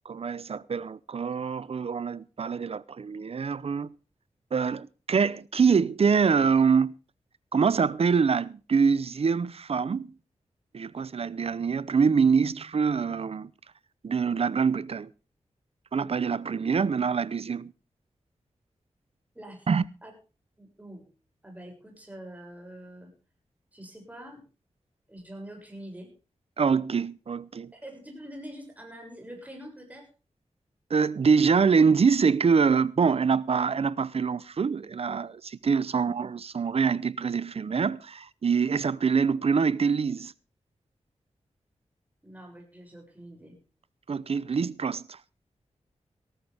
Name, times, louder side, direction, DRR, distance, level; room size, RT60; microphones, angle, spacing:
voice 1, 0.1-3.9 4.5-6.9 7.5-10.1 10.7-13.5 14.0-15.1 15.9-17.7 19.7-19.8 26.6-27.7 30.9-40.3 44.1-45.2, right 5 dB, 55° right, 0.7 m, -25 dB
voice 2, 19.4-19.7 20.0-20.1 20.6-21.1 21.4-23.1 23.7-24.4 25.1-26.1 27.7-30.1 36.0-36.1 42.2-43.6, right 1 dB, 15° right, 6.9 m, -45 dB
18.0 x 13.5 x 3.5 m
wide cardioid pair, 95°, 12 cm